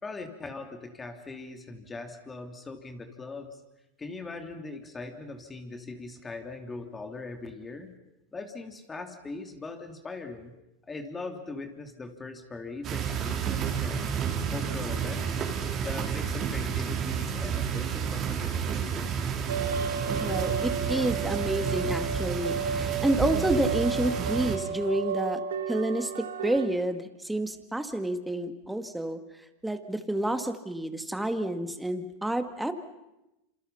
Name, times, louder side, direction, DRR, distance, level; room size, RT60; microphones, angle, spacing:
voice 1, 0.0-3.6 4.0-7.9 8.3-10.5 10.9-14.1 14.5-15.4 15.8-19.3, left 3 dB, 15° left, 5 dB, 3.2 m, -40 dB
sound 1, 12.8-24.6, right 7 dB, 35° right, 4.0 m, -31 dB
sound 2, 19.5-26.7, right 6 dB, 90° right, 2.0 m, -32 dB
voice 2, 20.2-25.4 25.7-29.2 29.6-32.7, right 1 dB, 5° right, 8 dB, 2.0 m, -29 dB
27.5 x 27.0 x 5.7 m, 0.94 s
hypercardioid pair, 110°, 0 cm